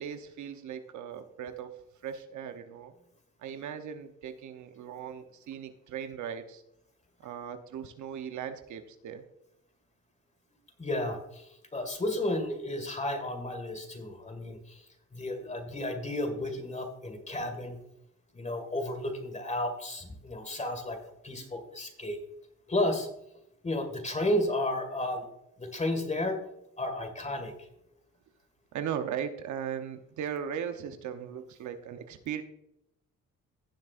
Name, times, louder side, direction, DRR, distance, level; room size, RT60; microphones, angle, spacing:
voice 1, 0.0-1.7 2.0-2.9 3.4-6.6 7.2-9.2 15.4-15.6 28.7-32.4, right 8 dB, 70° right, 8 dB, 0.9 m, -38 dB
voice 2, 10.8-14.9 15.1-17.8 18.3-22.2 22.7-23.1 23.6-25.3 25.6-26.4 26.8-27.5, left 1 dB, 25° left, 6 dB, 2.0 m, -32 dB
16.0 x 7.5 x 2.5 m, 0.82 s
cardioid pair, 90°, 30 cm